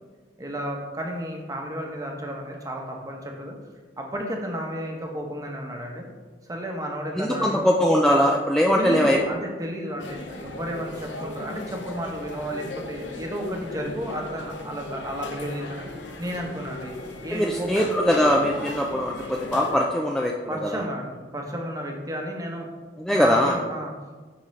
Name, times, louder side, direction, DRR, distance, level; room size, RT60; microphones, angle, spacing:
voice 1, 0.4-3.5 4.0-6.0 6.5-7.7 8.8-15.9 16.2-16.9 17.2-17.7 20.5-22.7 23.1-23.9, equal, 20° right, 1 dB, 0.9 m, -32 dB
voice 2, 7.2-9.2 17.3-20.8 23.0-23.6, equal, 5° left, -1 dB, 0.3 m, -21 dB
sound 1, 10.0-19.8, left 2 dB, 85° left, 0.7 m, -37 dB
9.7 x 3.9 x 3.1 m, 1.3 s
head